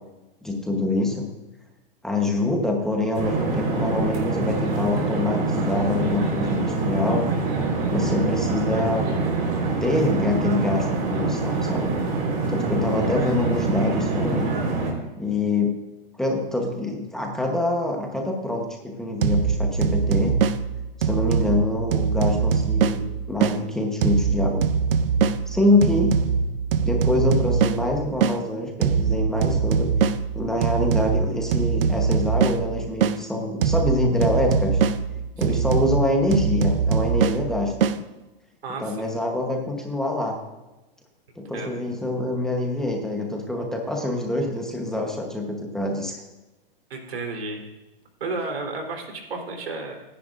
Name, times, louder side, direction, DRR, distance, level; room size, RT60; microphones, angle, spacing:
voice 1, 0.4-1.3 2.0-7.3 7.9-9.0 9.8-11.9 12.5-14.5 15.2-15.8 16.1-20.4 21.0-23.0 23.3-24.6 25.5-26.2 26.8-29.9 30.3-34.8 35.4-37.9 38.8-40.4 41.3-46.1, left 2 dB, ahead, 0 dB, 1.1 m, -25 dB
sound 1, 3.2-14.9, right 3 dB, 35° right, 4.4 m, -25 dB
sound 2, 19.2-23.6 24.0-28.4 28.8-33.2 33.6-38.0, right 6 dB, 65° right, 0.8 m, -23 dB
voice 2, 38.6-39.1 41.5-41.7 46.9-47.6 48.2-49.9, right 3 dB, 85° right, 2 dB, 3.8 m, -32 dB
27.5 x 10.0 x 2.6 m, 1.1 s
hypercardioid pair, 155°, 30 cm